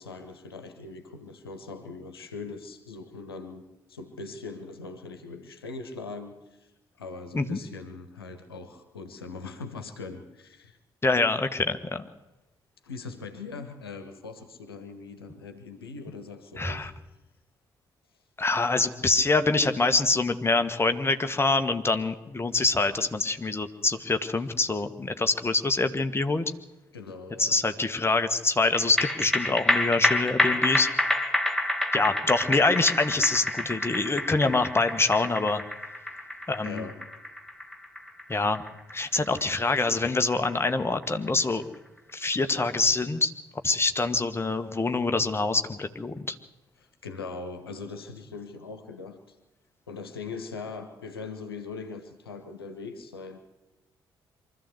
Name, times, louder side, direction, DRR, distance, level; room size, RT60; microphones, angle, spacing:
voice 1, 0.0-6.7 7.0-10.8 12.8-16.9 26.9-27.6 36.6-37.0 46.8-49.4 49.9-53.4, left 4 dB, 85° left, 8 dB, 1.2 m, -41 dB
voice 2, 11.0-12.0 16.6-16.9 18.4-26.4 27.4-30.9 31.9-35.6 36.5-36.9 38.3-38.6 38.9-41.7 42.1-43.3 43.6-46.3, left 3 dB, 20° left, 7 dB, 1.7 m, -25 dB
sound 1, 28.7-41.4 41.7-41.8, left 1 dB, ahead, 2.6 m, -28 dB
24.0 x 13.5 x 8.2 m, 1.0 s
figure-of-eight pair, 40°, 12 cm